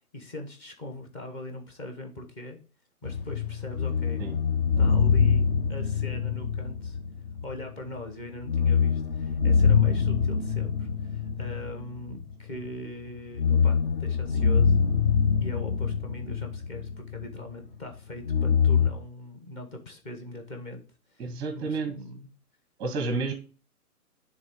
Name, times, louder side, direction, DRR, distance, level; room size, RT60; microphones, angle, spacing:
voice 1, 0.1-2.6 3.0-4.2 4.8-7.0 7.4-14.8 15.4-20.8 21.1-21.3 21.5-22.3, left 1 dB, 15° left, 2 dB, 1.1 m, -41 dB
sound 1, 3.0-7.7 8.0-8.1 8.4-12.7 13.2-17.5 18.2-18.9, left 6 dB, 35° left, 0.7 m, -24 dB
voice 2, 21.2-21.9 22.8-23.3, right 3 dB, 10° right, 6 dB, 0.9 m, -30 dB
10.0 x 3.6 x 3.7 m, 0.37 s
figure-of-eight pair, 135°, 46 cm